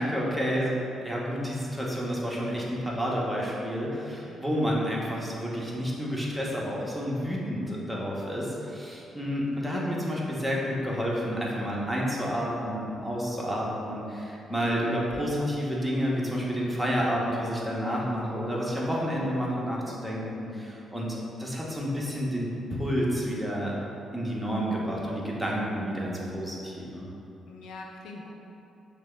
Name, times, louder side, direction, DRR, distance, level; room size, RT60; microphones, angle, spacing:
voice 1, 0.0-21.1 21.4-23.7 24.1-27.1, equal, 10° right, -4 dB, 1.1 m, -30 dB
voice 2, 24.3-25.2 27.5-28.3, left 3 dB, 80° left, 0 dB, 0.4 m, -45 dB
6.6 x 2.2 x 3.3 m, 2.8 s
supercardioid pair, 60°, 0 cm